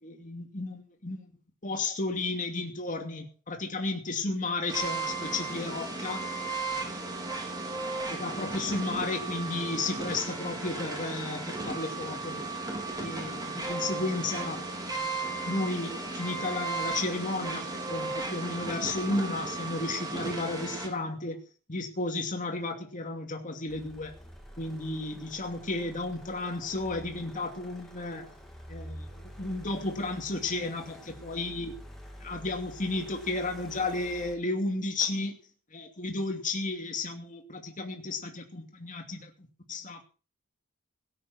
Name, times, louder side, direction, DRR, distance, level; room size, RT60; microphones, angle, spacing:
voice 1, 0.0-1.3 1.6-6.3 6.7-6.8 8.1-12.4 13.0-21.4 21.7-24.1 24.6-28.3 28.7-31.7 32.2-35.4 35.7-39.3 39.7-40.0, left 2 dB, 35° left, 2.6 m, -33 dB
sound 1, 4.7-20.9, right 3 dB, 20° right, 4.3 m, -35 dB
sound 2, 23.7-34.4, equal, ahead, 3.1 m, -48 dB
17.5 x 8.5 x 6.3 m
head